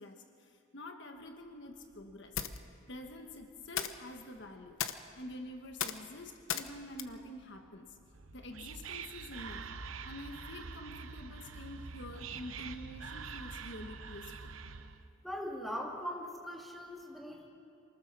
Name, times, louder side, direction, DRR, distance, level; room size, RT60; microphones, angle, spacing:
voice 1, 0.0-2.4 2.9-4.8 5.1-8.0 8.3-9.7 10.0-14.5, left 1 dB, 60° left, 4 dB, 1.5 m, -47 dB
sound 1, 1.2-8.4, left 8 dB, 80° left, 1.0 m, -42 dB
Whispering, 8.1-15.1, right 5 dB, 85° right, 0.9 m, -45 dB
voice 2, 15.2-17.5, equal, ahead, -2 dB, 2.6 m, -40 dB
24.5 x 18.5 x 7.0 m, 2.5 s
head